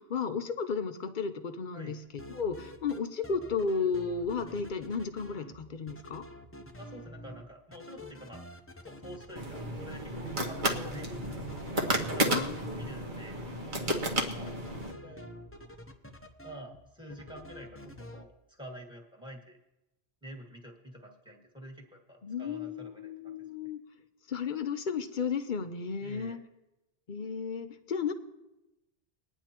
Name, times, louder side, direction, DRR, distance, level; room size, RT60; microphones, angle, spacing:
voice 1, 0.0-6.2 12.3-12.6 22.2-23.8 24.3-26.4 27.1-28.1, left 5 dB, 50° left, 10 dB, 0.8 m, -33 dB
sound 1, 2.0-3.0 3.2-5.5 5.9-7.4 7.7-12.9 14.5-16.8 17.1-18.2, left 1 dB, 15° left, 0.7 m, -47 dB
voice 2, 6.8-8.4 8.8-11.5 12.1-12.5 12.8-13.4 13.8-14.5 14.9-15.3 16.4-19.6 20.2-23.4 26.0-26.4, equal, 5° right, 0 dB, 1.9 m, -47 dB
sound 2, 9.4-14.9, right 1 dB, 50° right, 1.3 m, -32 dB
21.5 x 9.9 x 3.0 m, 0.96 s
omnidirectional pair, 1.1 m